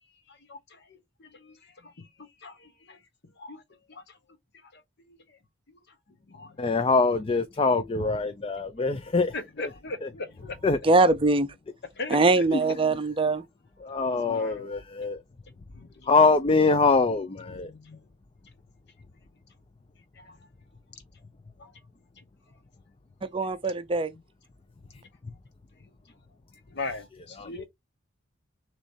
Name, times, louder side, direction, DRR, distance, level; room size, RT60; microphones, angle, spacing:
voice 1, 1.2-1.6 1.8-1.9 2.4-3.0 3.4-3.6 3.9-4.0 4.7-4.8 6.3-6.5 9.3-10.6 12.0-12.4 14.0-14.7 15.8-15.9 17.6-18.0 20.2-20.3 21.6-21.7 26.7-27.7, left 3 dB, 55° left, 1.1 m, -38 dB
voice 2, 6.6-9.7 10.0-10.1 10.6-10.8 12.5-12.6 13.8-15.2 16.1-17.7 27.4-27.5, left 4 dB, 25° left, 0.4 m, -24 dB
voice 3, 10.8-11.5 12.1-13.4 23.3-24.1, right 3 dB, 25° right, 0.5 m, -22 dB
6.4 x 3.2 x 2.6 m
head